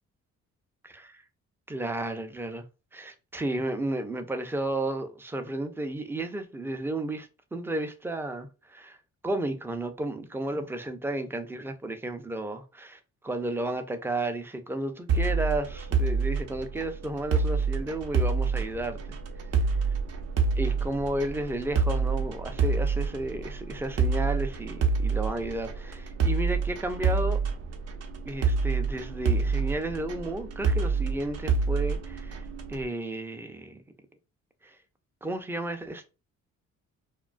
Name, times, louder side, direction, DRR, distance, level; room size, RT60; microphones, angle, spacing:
voice 1, 0.8-1.2 1.7-2.6 2.9-9.0 9.2-19.0 20.6-27.4 28.3-33.8 34.6-34.8 35.2-36.1, right 1 dB, 10° right, 0.3 m, -33 dB
sound 1, 15.1-32.8, right 4 dB, 55° right, 0.5 m, -27 dB
2.3 x 2.2 x 2.4 m
cardioid pair, 90°, 30 cm